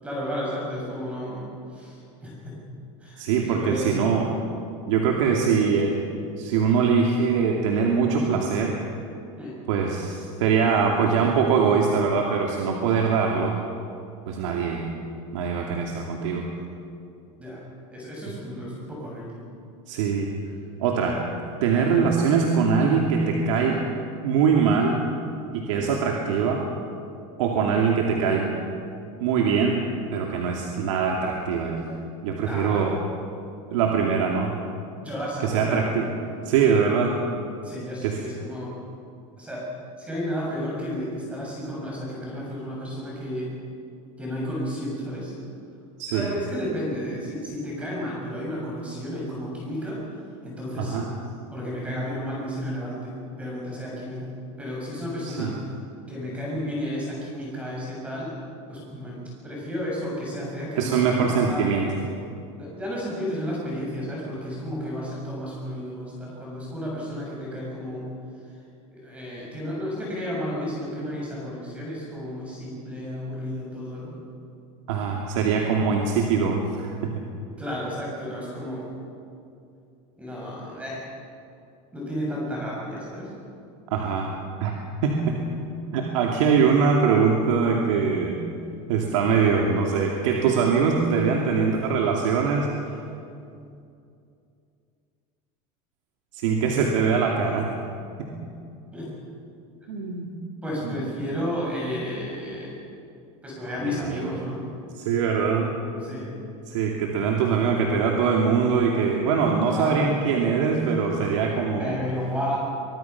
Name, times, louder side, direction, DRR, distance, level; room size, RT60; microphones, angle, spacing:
voice 1, 0.0-2.6 3.0-4.1 9.4-9.6 17.4-17.6 17.9-19.4 21.7-21.9 27.7-27.8 32.4-32.9 34.9-35.8 37.6-38.7 39.4-39.7 40.0-43.5 44.2-45.3 46.1-50.0 50.4-51.1 51.5-54.3 54.6-55.6 56.1-58.3 58.7-59.2 59.4-61.7 62.5-68.1 68.9-74.2 77.6-78.9 80.2-81.0 81.9-83.3 98.9-99.1 100.6-102.7 103.4-104.7 106.0-106.4 109.7-110.3 111.8-112.6, equal, 10° right, -5 dB, 7.2 m, -32 dB
voice 2, 3.2-4.5 4.9-6.0 6.4-8.8 9.7-13.6 14.3-14.8 15.3-16.4 19.9-20.3 20.8-21.2 21.6-23.8 24.2-25.0 25.5-26.6 27.4-28.5 29.2-31.8 32.2-32.9 33.7-34.6 35.4-36.1 36.4-37.2 38.0-38.2 46.0-46.3 50.8-51.1 55.2-55.5 60.8-61.9 74.9-77.2 83.9-84.3 84.6-84.7 85.0-85.4 85.9-88.4 88.9-92.7 96.3-97.7 98.2-98.3 99.9-100.3 100.8-101.3 103.7-104.3 105.0-105.8 106.7-112.0, right 6 dB, 80° right, 0 dB, 2.6 m, -23 dB
24.0 x 23.5 x 6.0 m, 2.5 s
supercardioid pair, 175°, 16 cm